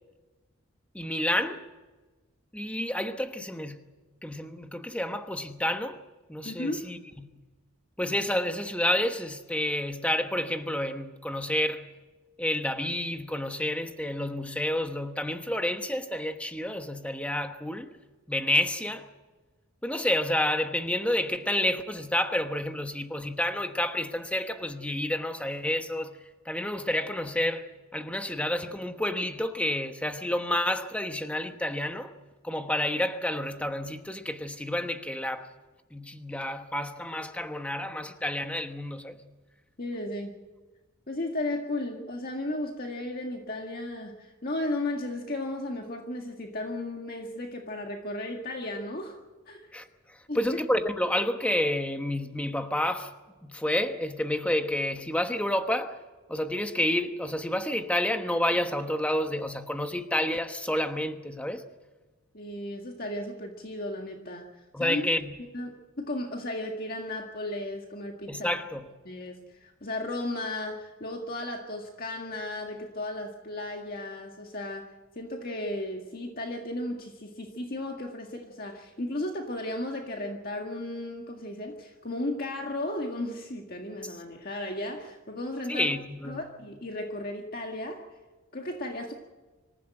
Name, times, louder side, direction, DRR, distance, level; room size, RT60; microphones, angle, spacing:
voice 1, 0.9-1.7 2.5-3.8 4.2-6.0 6.3-7.3 8.0-11.9 12.4-17.9 18.3-19.1 19.8-26.2 26.4-32.1 32.4-35.5 35.9-39.2 49.7-53.1 53.4-56.0 56.3-61.6 64.7-65.3 68.3-68.8 84.0-84.2 85.7-86.5, left 1 dB, 5° left, 1.1 m, -29 dB
voice 2, 6.4-6.8 39.8-40.3 41.1-49.2 49.5-49.7 50.3-50.6 62.3-65.1 65.5-68.5 69.0-74.9 75.1-85.9 86.2-88.0 88.5-89.1, left 1 dB, 40° left, 1.8 m, -35 dB
25.5 x 15.5 x 7.9 m
head